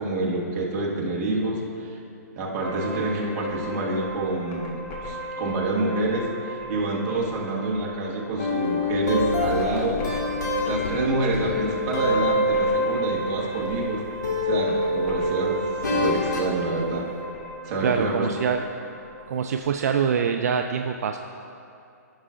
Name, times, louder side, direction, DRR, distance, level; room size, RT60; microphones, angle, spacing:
voice 1, 0.0-2.0 2.3-4.8 5.0-10.0 10.6-14.0 14.4-15.6 15.9-17.0 17.6-18.3, right 2 dB, 30° right, -3 dB, 1.4 m, -27 dB
sound 1, 2.6-19.7, equal, 25° left, 1.2 m, -37 dB
sound 2, 8.4-13.9 14.2-16.5, left 1 dB, 85° left, 1.8 m, -26 dB
voice 2, 17.8-18.6 19.3-21.2, right 7 dB, 65° right, 5 dB, 0.4 m, -24 dB
16.0 x 5.6 x 2.5 m, 2.7 s
hypercardioid pair, 155°, 9 cm